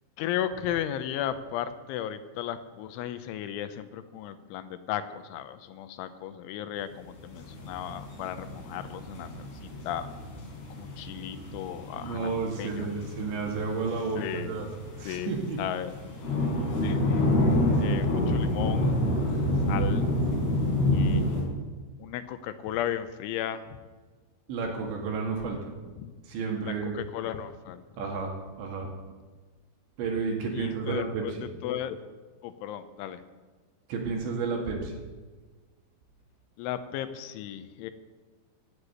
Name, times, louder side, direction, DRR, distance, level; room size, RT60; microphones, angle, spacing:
voice 1, 0.2-10.1 10.8-12.3 12.6-12.9 13.9-15.3 15.6-16.1 16.8-19.4 19.7-20.0 20.9-21.4 22.0-23.7 26.0-26.1 26.6-27.8 28.8-28.9 30.5-32.0 32.4-33.2 36.6-37.9, left 10 dB, 85° left, 11 dB, 3.2 m, -35 dB
sound 1, 7.2-21.4, left 1 dB, 60° left, 6.0 m, -28 dB
voice 2, 12.0-14.7 15.0-15.6 24.5-25.6 26.3-27.0 28.0-28.9 30.0-31.4 33.9-34.9, right 4 dB, 70° right, 1 dB, 4.2 m, -31 dB
17.0 x 8.3 x 8.1 m, 1.3 s
omnidirectional pair, 5.6 m